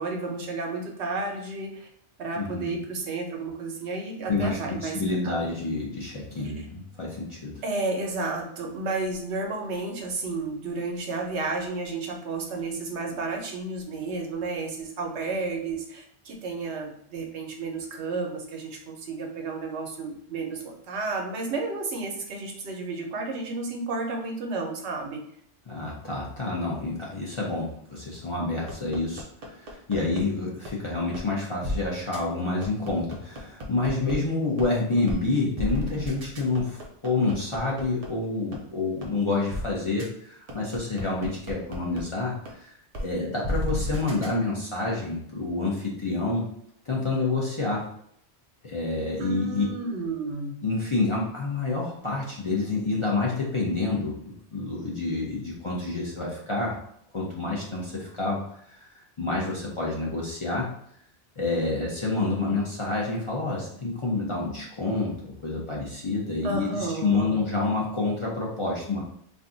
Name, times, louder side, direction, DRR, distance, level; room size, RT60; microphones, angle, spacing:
voice 1, 0.0-1.9 2.2-5.0 5.2-5.4 6.4-6.7 7.6-25.2 49.2-50.6 66.4-67.4, right 3 dB, 85° right, 1 dB, 1.0 m, -32 dB
voice 2, 2.4-2.7 4.3-7.6 25.7-42.7 43.0-46.4 46.9-47.8 48.6-49.7 50.6-54.1 54.5-56.7 57.1-58.4 58.7-58.9 59.2-60.7 61.4-69.0, left 3 dB, 35° left, -4 dB, 0.5 m, -28 dB
sound 1, 28.7-30.2 30.7-30.8 31.1-31.2 31.6-31.8 32.1-32.2 32.6-34.1 34.6-34.7 35.1-35.2 35.6-38.1 38.5-38.6 39.0-39.1 39.5-39.6 40.0-40.1 40.5-42.0 42.5-42.6 42.9-43.0 43.4-44.3, left 1 dB, 45° right, 0.6 m, -32 dB
2.5 x 2.3 x 3.8 m, 0.68 s
omnidirectional pair, 1.1 m